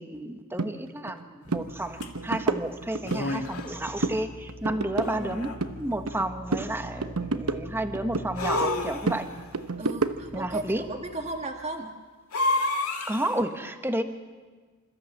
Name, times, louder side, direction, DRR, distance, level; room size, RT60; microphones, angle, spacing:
voice 1, 0.0-9.3 10.3-10.8 13.1-14.0, right 1 dB, 10° right, 7 dB, 1.2 m, -31 dB
sound 1, 0.6-0.7 1.1-1.2 1.5-1.7 2.0-3.2 3.6-4.2 4.5-6.2 6.5-8.3 8.6-10.5, right 3 dB, 85° right, 1.0 m, -30 dB
sound 2, 1.4-11.4, left 1 dB, 45° left, 4.2 m, -45 dB
sound 3, 2.0-2.1 3.0-3.8 5.0-5.7 8.4-9.4 12.3-13.4, left 2 dB, 80° left, 2.2 m, -29 dB
voice 2, 9.8-11.9, right 2 dB, 30° right, 2 dB, 1.6 m, -35 dB
27.0 x 14.0 x 7.4 m, 1.4 s
head